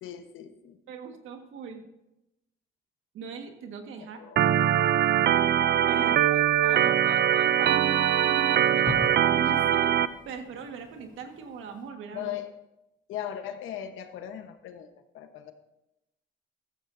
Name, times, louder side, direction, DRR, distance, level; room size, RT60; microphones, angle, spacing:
voice 1, 0.0-0.8 4.2-4.6 6.0-6.9 12.1-12.5 13.1-15.5, left 10 dB, 90° left, 8 dB, 1.2 m, -39 dB
voice 2, 0.9-1.8 3.1-4.2 5.9-8.2 8.5-10.0 10.2-12.3, right 6 dB, 85° right, 5 dB, 1.7 m, -40 dB
Organ, 4.4-10.1, right 10 dB, 60° right, 0.5 m, -22 dB
Fireworks, 6.2-11.9, left 2 dB, 20° left, 2.7 m, -43 dB
14.5 x 14.0 x 2.7 m, 0.91 s
cardioid pair, 90°, 20 cm